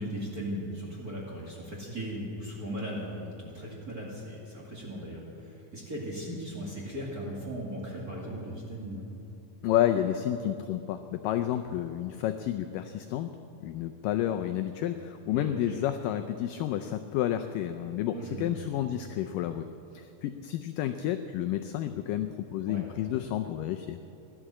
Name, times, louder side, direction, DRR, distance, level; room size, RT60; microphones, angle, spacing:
voice 1, 0.0-9.0 15.3-15.8 18.1-18.5 22.7-22.8, equal, 30° right, -5 dB, 2.0 m, -37 dB
voice 2, 9.6-13.3 13.6-19.6 19.9-24.0, left 11 dB, 85° left, 9 dB, 1.9 m, -30 dB
16.0 x 11.5 x 7.6 m, 2.8 s
omnidirectional pair, 4.5 m